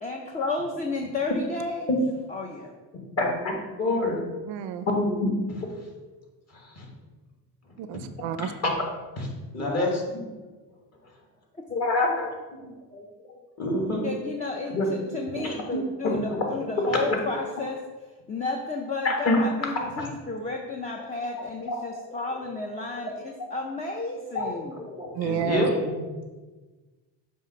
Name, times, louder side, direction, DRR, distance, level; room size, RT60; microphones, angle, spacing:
voice 1, 0.0-1.9 2.3-2.7 9.6-9.9 14.0-17.8 18.3-24.8, left 3 dB, 15° left, 1 dB, 0.5 m, -32 dB
voice 2, 3.8-4.2 4.9-5.7 6.8-6.9 8.4-8.7 9.2-9.3 9.5-10.2 11.7-12.3 12.6-13.0 13.6-14.1 14.7-14.9 15.4-16.4 16.8-16.9 19.0-19.4 20.0-20.1 21.7-22.2 23.0-23.1 24.3-26.2, left 2 dB, 35° left, 0 dB, 1.6 m, -27 dB
voice 3, 4.5-4.9 7.8-8.5 25.1-25.7, right 9 dB, 75° right, 10 dB, 0.6 m, -30 dB
7.2 x 2.6 x 5.7 m, 1.3 s
cardioid pair, 110°, 44 cm